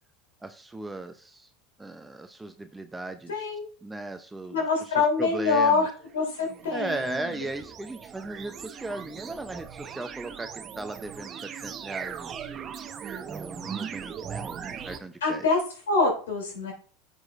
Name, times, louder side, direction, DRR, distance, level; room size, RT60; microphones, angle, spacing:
voice 1, 0.4-1.5 1.8-3.4 3.8-4.6 4.9-5.9 6.7-12.4 13.3-15.5, right 2 dB, 10° right, 7 dB, 0.7 m, -37 dB
voice 2, 3.3-3.7 4.5-5.9 6.1-7.4 15.2-15.6 15.9-16.7, left 4 dB, 90° left, 1 dB, 3.4 m, -25 dB
sound 1, 6.0-15.0, right 7 dB, 35° right, 0.9 m, -39 dB
10.5 x 6.3 x 2.6 m, 0.42 s
hypercardioid pair, 95°, 0 cm